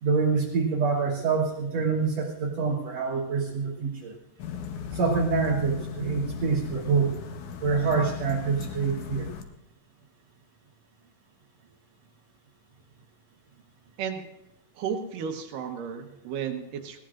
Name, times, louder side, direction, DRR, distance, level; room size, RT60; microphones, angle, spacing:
voice 1, 0.0-4.1 4.9-7.2 7.6-9.3, right 5 dB, 60° right, 0 dB, 2.1 m, -26 dB
sound 1, 4.4-9.4, left 6 dB, 75° left, 2.4 m, -37 dB
voice 2, 14.8-17.0, right 7 dB, 85° right, 5 dB, 2.9 m, -33 dB
20.0 x 17.5 x 2.5 m, 0.88 s
omnidirectional pair, 3.7 m